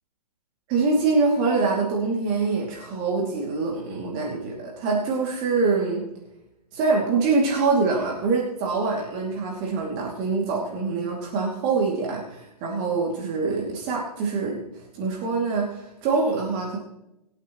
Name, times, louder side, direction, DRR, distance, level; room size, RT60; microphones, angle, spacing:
voice 1, 0.7-6.0 6.7-14.6 14.9-16.8, right 4 dB, 40° right, -2 dB, 2.6 m, -24 dB
22.5 x 8.4 x 3.1 m, 0.89 s
hypercardioid pair, 120°, 20 cm